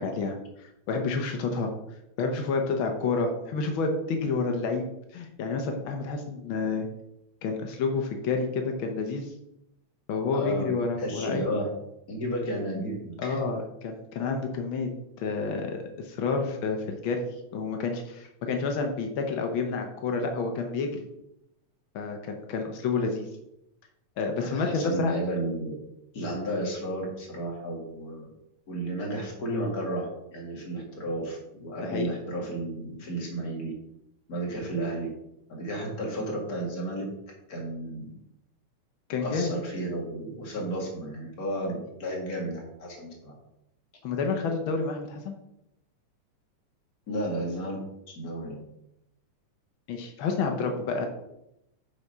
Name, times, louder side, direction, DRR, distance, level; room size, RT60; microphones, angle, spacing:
voice 1, 0.0-1.7 2.2-4.9 5.1-6.9 7.4-9.3 10.1-11.4 13.2-14.9 15.2-21.1 21.9-23.3 24.2-25.1 31.8-32.1 39.1-39.5 44.0-45.3 49.9-51.1, left 4 dB, 90° left, 3 dB, 1.1 m, -29 dB
voice 2, 10.3-10.7 11.0-11.7 12.1-13.4 24.4-25.7 26.1-28.2 28.7-33.7 34.3-35.1 35.5-37.0 37.5-38.1 39.2-43.3 47.1-47.8 48.2-48.6, right 1 dB, 35° left, -1 dB, 1.9 m, -32 dB
6.8 x 4.8 x 5.5 m, 0.84 s
omnidirectional pair, 3.4 m